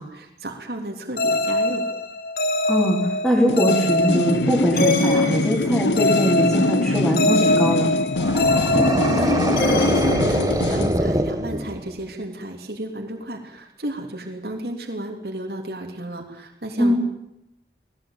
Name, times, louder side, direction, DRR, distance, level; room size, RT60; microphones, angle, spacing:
voice 1, 0.0-1.8 8.7-16.9, right 1 dB, 65° right, 2 dB, 3.3 m, -33 dB
sound 1, 1.2-11.0, left 2 dB, 55° left, 1.6 m, -24 dB
voice 2, 2.6-7.9 16.8-16.9, equal, ahead, -7 dB, 4.4 m, -21 dB
sound 2, 3.5-11.0, left 2 dB, 90° left, 0.8 m, -24 dB
sound 3, 8.1-12.0, right 1 dB, 20° right, 1.2 m, -23 dB
19.5 x 18.0 x 9.1 m, 0.84 s
head